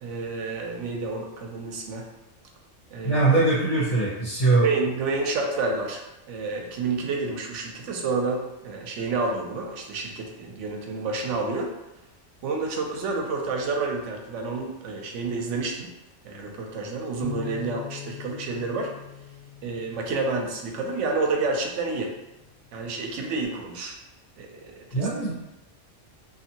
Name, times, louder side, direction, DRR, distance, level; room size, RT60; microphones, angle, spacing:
voice 1, 0.0-2.1 2.9-3.2 4.6-6.0 6.3-11.7 12.4-15.9 16.2-18.9 19.6-22.2 22.7-23.9 24.4-25.1, right 3 dB, 75° right, 2 dB, 0.9 m, -29 dB
voice 2, 3.0-4.7 24.9-25.3, right 3 dB, 60° left, -12 dB, 1.4 m, -21 dB
Bass guitar, 17.2-21.6 22.3-23.4, left 11 dB, 35° left, 0.4 m, -42 dB
2.7 x 2.5 x 2.8 m, 0.97 s
omnidirectional pair, 1.3 m